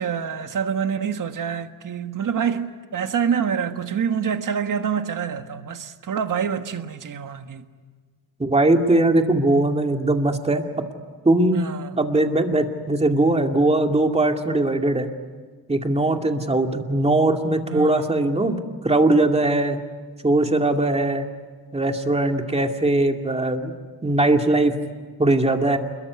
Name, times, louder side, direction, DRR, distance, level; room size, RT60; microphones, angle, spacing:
voice 1, 0.0-7.6 11.5-12.0 17.7-18.1, right 7 dB, 55° right, 1.6 m, -26 dB
voice 2, 8.4-10.6 11.2-11.6 12.0-15.1 15.7-18.6 18.8-19.8 20.2-21.3 21.7-23.7 24.0-24.8 25.2-25.8, right 2 dB, 15° right, 2.3 m, -20 dB
28.0 x 22.0 x 9.6 m
wide cardioid pair, 120°, 37 cm